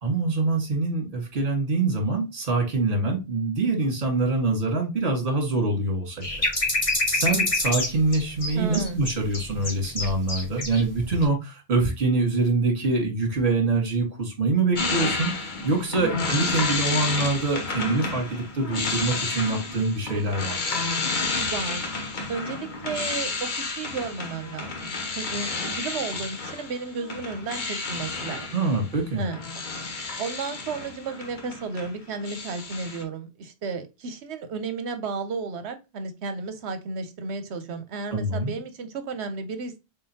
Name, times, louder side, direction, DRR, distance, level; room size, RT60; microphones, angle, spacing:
voice 1, 0.0-6.4 7.1-20.6 28.5-29.2 38.1-38.5, right 3 dB, 55° right, 1.7 m, -25 dB
sound 1, 6.2-10.8 11.1-11.2, left 2 dB, 30° left, 1.3 m, -26 dB
voice 2, 8.5-9.0 16.0-16.2 21.3-21.9 22.3-28.5 29.2-29.4 30.2-39.8, right 4 dB, 80° right, 1.0 m, -33 dB
sound 2, 14.8-31.9 32.2-33.0, left 3 dB, 50° left, 0.9 m, -31 dB
3.8 x 3.8 x 2.7 m
omnidirectional pair, 1.1 m